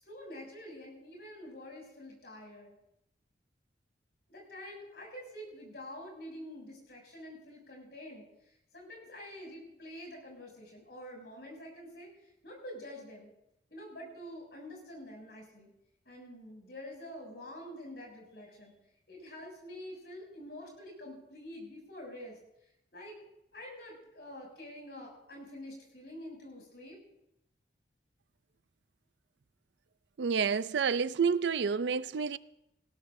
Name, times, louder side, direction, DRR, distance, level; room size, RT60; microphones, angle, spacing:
voice 1, 0.0-2.7 4.3-13.3 13.7-15.7 16.0-18.7 19.1-22.4 22.9-23.2 23.5-27.0, left 1 dB, 60° left, 6.9 m, -47 dB
voice 2, 30.2-32.4, right 6 dB, 75° right, 0.4 m, -29 dB
20.0 x 17.0 x 2.7 m
head